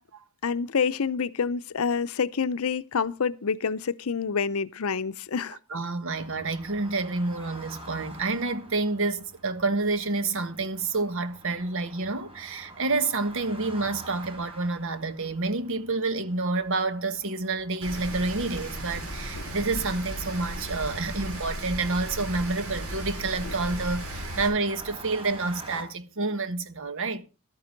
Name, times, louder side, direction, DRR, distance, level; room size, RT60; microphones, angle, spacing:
voice 1, 0.4-5.6, left 5 dB, 75° left, 0.6 m, -27 dB
voice 2, 5.7-27.2, right 3 dB, 65° right, 1.4 m, -29 dB
sound 1, 6.1-25.8, right 1 dB, 25° right, 4.4 m, -48 dB
Rain, 17.8-24.5, right 1 dB, 85° right, 5.2 m, -35 dB
12.5 x 9.7 x 5.1 m
head